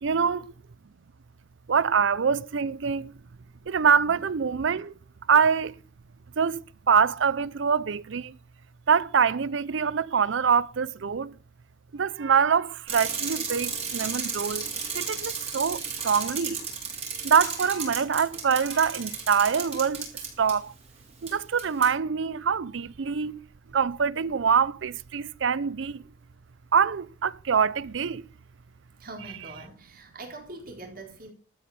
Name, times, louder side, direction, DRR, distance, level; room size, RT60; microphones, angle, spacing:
voice 1, 0.0-0.5 1.7-3.1 3.7-4.9 5.3-5.8 6.4-8.3 8.9-11.3 11.9-14.7 14.9-16.7 17.2-20.1 20.4-20.7 21.2-23.4 23.7-26.0 26.7-28.2, right 6 dB, 70° right, 0.5 m, -24 dB
Bicycle, 12.9-20.5 21.3-21.4 21.6-21.9, right 6 dB, 30° right, 5.1 m, -33 dB
voice 2, 29.0-31.3, right 2 dB, 50° right, 4.1 m, -43 dB
13.0 x 8.6 x 5.8 m
head